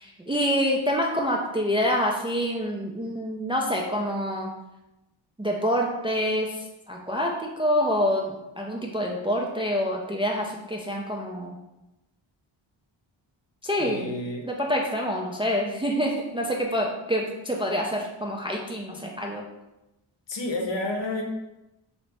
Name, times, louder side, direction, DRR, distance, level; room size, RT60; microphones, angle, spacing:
voice 1, 0.0-4.5 5.4-6.6 6.9-11.6 13.6-14.1 14.4-19.4, equal, 10° right, -1 dB, 0.3 m, -26 dB
voice 2, 13.8-14.5 18.9-19.0 20.3-21.2, left 2 dB, 60° left, 2 dB, 0.8 m, -30 dB
2.9 x 2.6 x 3.3 m, 0.95 s
cardioid pair, 60°, 48 cm